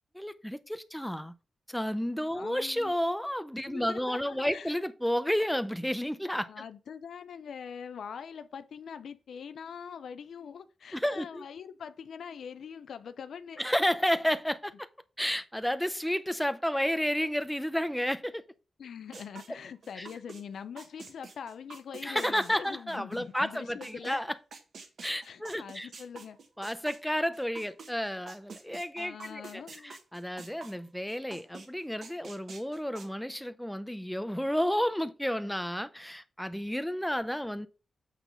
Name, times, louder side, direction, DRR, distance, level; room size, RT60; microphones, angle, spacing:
voice 1, 0.1-1.3 1.7-6.5 10.9-11.4 13.6-14.9 15.2-18.4 20.0-20.1 22.0-24.3 25.0-25.9 26.6-37.7, equal, 5° left, 0.5 m, -31 dB
voice 2, 2.3-2.9 3.6-4.8 6.5-13.6 18.8-24.2 25.2-26.4 29.0-30.0, left 7 dB, 70° left, 0.5 m, -43 dB
sound 1, 19.1-20.4 20.8-24.2 24.5-27.9 28.3-30.8 31.1-31.7 32.0-33.1, right 4 dB, 55° right, 1.4 m, -47 dB
8.3 x 3.8 x 5.2 m
wide cardioid pair, 170°, 0 cm